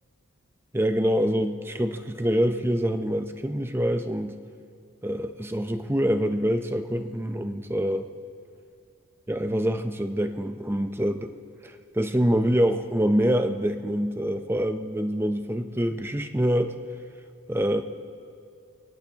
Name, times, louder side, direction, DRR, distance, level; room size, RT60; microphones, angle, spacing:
voice 1, 0.7-4.4 5.0-8.1 9.3-11.3 11.6-16.7 17.5-17.8, equal, 10° right, 8 dB, 0.6 m, -25 dB
22.5 x 17.0 x 2.9 m, 2.5 s
head